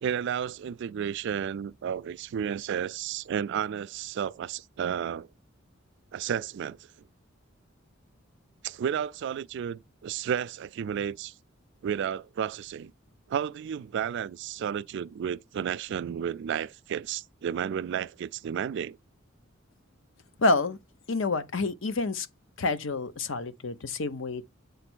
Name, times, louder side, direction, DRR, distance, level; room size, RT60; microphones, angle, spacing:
voice 1, 0.0-5.3 6.1-6.8 8.6-11.3 11.8-12.9 13.3-19.0, right 8 dB, 60° right, 0.3 m, -32 dB
voice 2, 20.4-20.8 21.1-22.3 22.6-24.4, left 3 dB, 70° left, 0.8 m, -28 dB
8.0 x 3.3 x 6.1 m
head